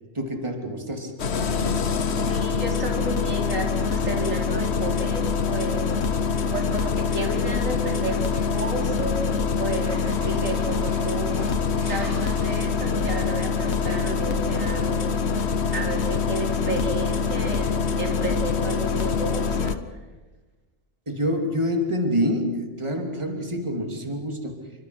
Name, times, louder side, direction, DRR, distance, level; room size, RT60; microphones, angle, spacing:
voice 1, 0.1-1.2 21.1-24.6, equal, 20° right, 3 dB, 3.0 m, -27 dB
Engine starting, 1.2-19.8, left 5 dB, 60° left, 1.3 m, -25 dB
voice 2, 2.2-5.9 6.5-20.0, right 2 dB, 90° right, 1 dB, 4.1 m, -32 dB
sound 1, 9.7-14.9, right 1 dB, 60° right, 4.3 m, -43 dB
28.0 x 24.5 x 6.2 m, 1.2 s
omnidirectional pair, 1.3 m